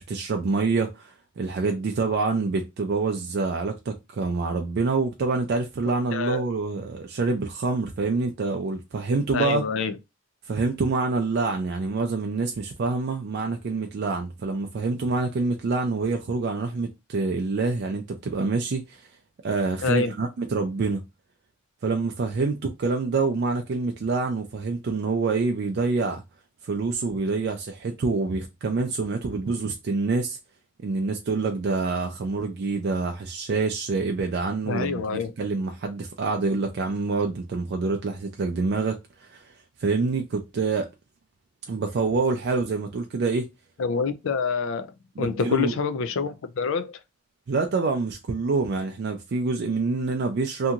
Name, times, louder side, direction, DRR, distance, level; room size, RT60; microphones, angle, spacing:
voice 1, 0.0-9.6 10.5-19.1 19.4-21.0 21.8-26.2 26.6-30.4 30.8-35.0 35.4-39.4 39.8-40.9 41.7-43.5 45.2-45.7 47.5-50.7, right 3 dB, 50° right, 0.4 m, -26 dB
voice 2, 6.1-6.4 9.3-10.0 19.8-20.1 34.7-35.3 43.8-47.0, left 5 dB, 65° left, 0.4 m, -27 dB
2.8 x 2.6 x 2.4 m
head